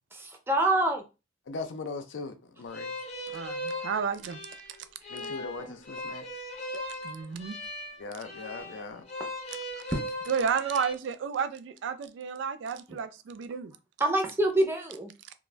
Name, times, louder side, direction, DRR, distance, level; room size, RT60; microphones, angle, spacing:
voice 1, 0.2-1.0 5.2-5.3 5.6-5.8 9.9-10.0 14.0-15.1, right 1 dB, 10° right, 0.4 m, -26 dB
voice 2, 1.5-2.9 5.1-6.4 8.0-9.0, left 3 dB, 85° left, 0.5 m, -39 dB
sound 1, 2.7-10.9, left 1 dB, 35° left, 0.6 m, -38 dB
voice 3, 3.3-4.4 7.0-7.6 10.3-13.7, right 6 dB, 80° right, 0.3 m, -31 dB
2.4 x 2.1 x 3.2 m
head